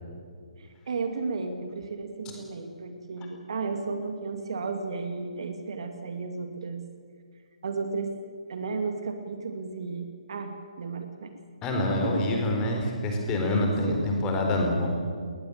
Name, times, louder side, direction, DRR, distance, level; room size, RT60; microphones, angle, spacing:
voice 1, 0.9-6.8 7.6-8.1 8.5-11.3 11.9-12.3 13.4-14.3, right 4 dB, 45° right, 6 dB, 2.4 m, -34 dB
voice 2, 11.6-14.9, left 1 dB, 15° left, 1 dB, 4.2 m, -26 dB
20.5 x 20.0 x 8.7 m, 2.1 s
figure-of-eight pair, 135°, 4 cm